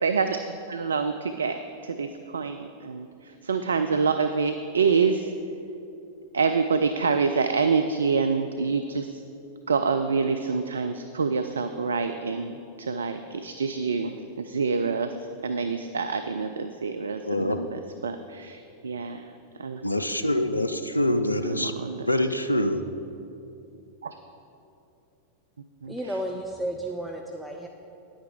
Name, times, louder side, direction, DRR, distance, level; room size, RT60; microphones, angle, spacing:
voice 1, 0.0-3.1 3.4-5.3 6.3-9.1 9.7-15.1 15.4-19.3 19.6-19.8 21.5-22.1 24.0-24.1 25.8-25.9, right 5 dB, 70° right, 8 dB, 0.3 m, -26 dB
voice 2, 17.2-17.6 19.8-21.7 22.1-22.8, left 1 dB, 85° left, 9 dB, 0.4 m, -25 dB
voice 3, 25.8-27.7, right 1 dB, ahead, 1 dB, 0.5 m, -32 dB
9.9 x 8.7 x 3.7 m, 2.7 s
figure-of-eight pair, 90°, 0 cm